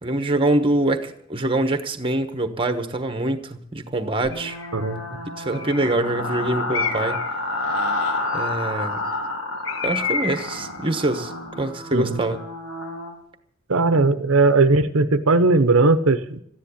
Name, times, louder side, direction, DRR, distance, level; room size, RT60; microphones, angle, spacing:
voice 1, 0.0-4.6 5.4-7.2 8.3-9.0 9.8-12.4, right 1 dB, 25° right, 9 dB, 1.1 m, -24 dB
sound 1, 4.2-13.1, left 2 dB, 90° left, 4.0 m, -29 dB
Bird, 4.3-4.8 5.5-6.1 6.7-7.3 9.6-10.6, left 5 dB, 60° left, 1.7 m, -29 dB
voice 2, 13.7-16.4, right 3 dB, 65° right, 10 dB, 0.8 m, -18 dB
14.0 x 10.5 x 8.4 m, 0.69 s
head